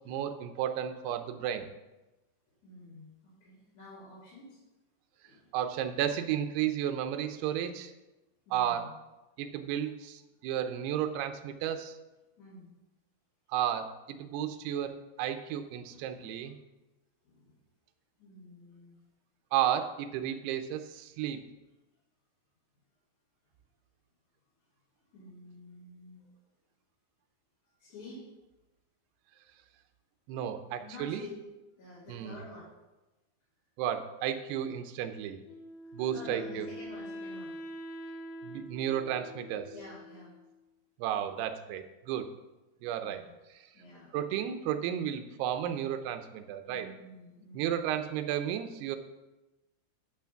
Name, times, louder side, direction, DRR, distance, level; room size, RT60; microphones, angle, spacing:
voice 1, 0.1-1.7 5.5-7.9 8.5-8.9 9.4-12.0 13.5-16.5 19.5-21.4 30.3-31.2 32.1-32.4 33.8-35.4 35.9-36.7 38.4-39.7 41.0-42.3 42.8-43.2 44.1-46.9 47.5-49.0, right 10 dB, 80° right, 8 dB, 2.6 m, -33 dB
voice 2, 2.6-4.6 5.2-5.6 8.5-8.9 12.4-12.7 15.9-16.5 17.2-17.5 18.2-19.0 25.0-26.3 27.8-28.2 30.8-31.3 31.8-32.7 36.1-37.5 39.7-40.3 43.0-43.3 43.7-44.1 46.7-47.8, left 2 dB, 45° left, -11 dB, 3.9 m, -50 dB
Wind instrument woodwind instrument, 35.4-40.5, equal, 75° left, 3.0 m, -44 dB
9.8 x 6.0 x 5.8 m, 1.0 s
omnidirectional pair, 5.0 m